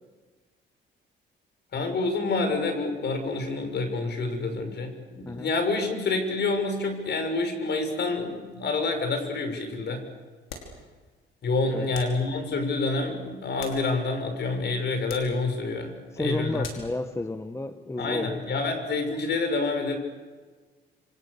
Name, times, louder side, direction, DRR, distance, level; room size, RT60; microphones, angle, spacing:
voice 1, 1.7-10.0 11.4-16.7 18.0-20.0, left 3 dB, 60° left, 6 dB, 6.4 m, -28 dB
sound 1, 10.5-10.8 11.9-12.2 13.3-14.2 15.0-15.4 16.6-17.0, left 5 dB, 85° left, 5.2 m, -42 dB
voice 2, 16.1-18.4, left 2 dB, 15° left, 9 dB, 1.3 m, -31 dB
28.5 x 26.0 x 6.8 m, 1.4 s
cardioid pair, 90°, 20 cm